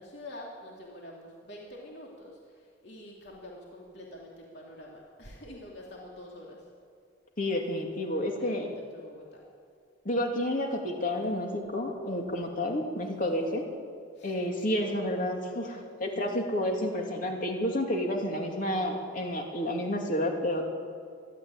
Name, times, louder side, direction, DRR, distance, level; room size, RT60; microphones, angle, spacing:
voice 1, 0.0-6.6 7.7-9.4 13.6-13.7 14.1-14.3 14.7-14.8, left 1 dB, 60° left, -3 dB, 3.1 m, -47 dB
voice 2, 7.4-8.7 10.0-13.6 14.2-20.6, left 1 dB, 45° left, 2 dB, 2.9 m, -30 dB
24.0 x 12.5 x 9.0 m, 2.2 s
head